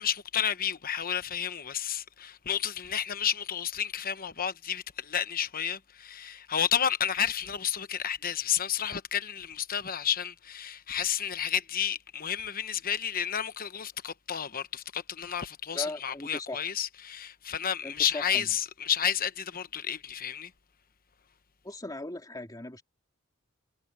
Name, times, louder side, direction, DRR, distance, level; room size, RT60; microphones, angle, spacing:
voice 1, 0.0-20.5, left 9 dB, 40° left, 1.0 m, -31 dB
voice 2, 15.7-16.6 17.8-18.5 21.6-22.8, left 2 dB, 15° left, 3.0 m, -38 dB
head